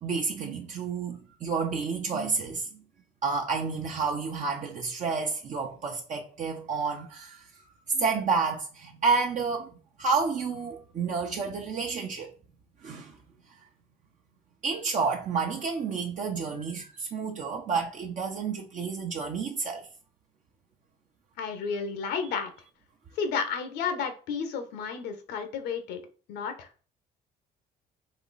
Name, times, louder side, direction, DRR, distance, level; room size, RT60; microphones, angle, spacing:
voice 1, 0.0-2.7 3.2-7.5 7.9-9.7 10.0-12.3 12.8-13.1 14.6-19.9, right 5 dB, 50° right, 0.8 m, -30 dB
voice 2, 21.4-22.5 23.1-26.0 26.3-26.7, left 6 dB, 80° left, 1.0 m, -32 dB
4.3 x 3.0 x 4.0 m
cardioid pair, 110°, 17 cm